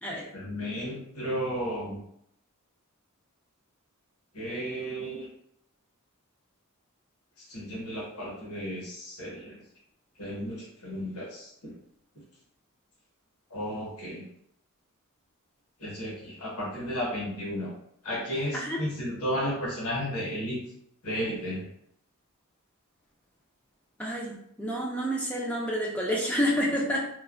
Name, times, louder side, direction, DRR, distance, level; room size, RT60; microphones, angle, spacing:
voice 1, 0.3-2.0 4.3-5.3 7.5-9.6 10.2-11.7 13.5-14.2 15.8-17.7 18.0-20.6 21.0-21.6, equal, 80° left, -4 dB, 0.9 m, -33 dB
voice 2, 24.0-27.1, equal, 5° left, -3 dB, 0.3 m, -29 dB
3.1 x 2.0 x 2.4 m, 0.72 s
head